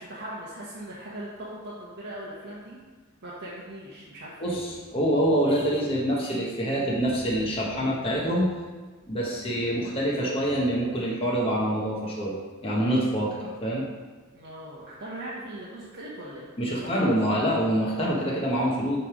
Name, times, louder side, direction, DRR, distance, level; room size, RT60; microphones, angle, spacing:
voice 1, 0.0-2.8 3.2-4.6 14.3-17.1, right 1 dB, 55° right, -7 dB, 1.0 m, -40 dB
voice 2, 4.4-8.5 9.1-12.4 12.6-13.8 16.6-19.0, equal, 25° left, -4 dB, 1.0 m, -26 dB
7.7 x 3.3 x 5.0 m, 1.3 s
head